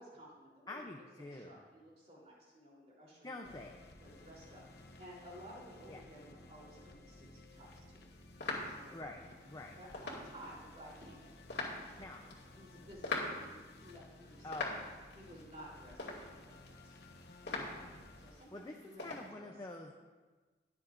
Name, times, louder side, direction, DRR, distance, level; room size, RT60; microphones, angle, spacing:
voice 1, 0.0-3.6 4.0-4.6 5.0-8.0 8.6-9.3 9.8-14.8 15.1-17.0 18.2-19.5, equal, 35° right, -4 dB, 3.6 m, -55 dB
voice 2, 0.7-1.6 3.2-3.8 5.9-6.0 8.9-9.8 12.0-12.2 14.4-14.8 17.5-18.0 18.5-18.8 19.0-19.9, left 2 dB, 20° left, 1 dB, 0.6 m, -47 dB
sound 1, 3.4-18.3, left 2 dB, 60° left, 0.9 m, -57 dB
sound 2, 7.5-19.3, left 3 dB, 75° left, 2.4 m, -45 dB
21.5 x 7.2 x 2.6 m, 1.3 s
head